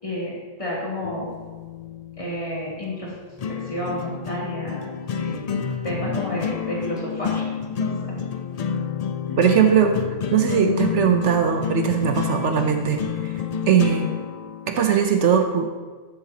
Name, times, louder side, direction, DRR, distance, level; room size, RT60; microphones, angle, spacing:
voice 1, 0.0-1.3 2.2-3.1 3.5-4.9 5.2-5.4 5.8-7.5 7.8-8.1 9.3-9.4, left 1 dB, 25° left, -7 dB, 2.8 m, -30 dB
sound 1, 1.0-15.0, left 7 dB, 80° left, 0.3 m, -29 dB
voice 2, 9.4-9.9 10.3-13.0 13.7-14.1 14.7-15.7, right 8 dB, 70° right, 5 dB, 1.0 m, -19 dB
13.0 x 7.2 x 2.9 m, 1.4 s
omnidirectional pair, 1.3 m